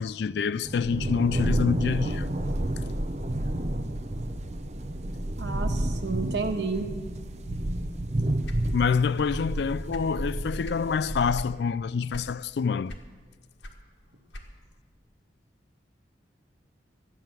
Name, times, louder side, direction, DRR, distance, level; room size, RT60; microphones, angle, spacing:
voice 1, 0.0-2.3 8.7-12.9, left 5 dB, 60° left, 0.3 m, -26 dB
sound 1, 0.6-11.4, right 1 dB, 35° right, 0.6 m, -30 dB
voice 2, 5.4-6.9, right 4 dB, 65° right, 1.3 m, -31 dB
sound 2, 8.4-9.5 9.7-10.9 11.3-11.6 12.1-12.5 12.9-14.8, equal, 80° left, 1.5 m, -41 dB
13.5 x 9.7 x 7.5 m
head